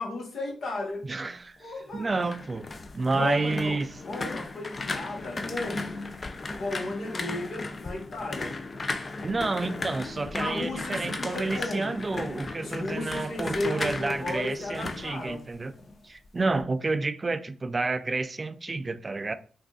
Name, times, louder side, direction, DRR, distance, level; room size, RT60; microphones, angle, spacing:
voice 1, 0.0-1.0 1.6-2.1 3.1-3.8 4.0-5.9 6.6-8.5 10.4-11.9 12.6-15.4, left 2 dB, 65° left, 1.1 m, -34 dB
voice 2, 1.0-2.7 2.9-4.0 9.2-15.7 16.0-19.3, right 3 dB, 35° right, 0.3 m, -30 dB
sound 1, 1.9-15.9 16.2-16.6, left 3 dB, 40° left, 0.4 m, -36 dB
3.5 x 2.4 x 2.4 m
supercardioid pair, 55°, 0 cm